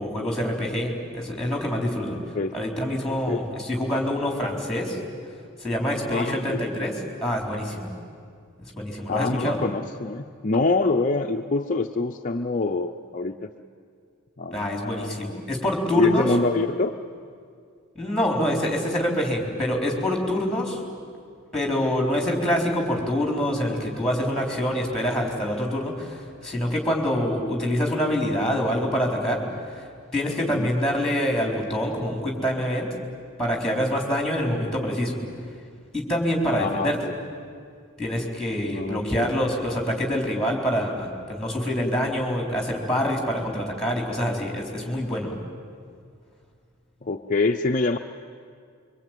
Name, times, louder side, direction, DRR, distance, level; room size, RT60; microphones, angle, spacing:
voice 1, 0.0-2.2 2.5-5.0 5.6-6.9 7.2-7.9 8.8-9.6 14.5-16.3 17.9-20.8 21.5-29.4 30.1-32.9 33.4-35.2 35.9-37.0 38.0-45.4, equal, 5° left, 0 dB, 4.3 m, -26 dB
voice 2, 2.0-2.5 3.1-3.5 6.0-6.7 9.1-13.5 14.4-15.7 15.9-16.9 22.0-22.2 30.4-30.7 36.4-37.1 38.6-39.5 47.0-48.0, left 3 dB, 35° left, 4 dB, 0.6 m, -26 dB
25.5 x 24.0 x 9.3 m, 2.2 s
head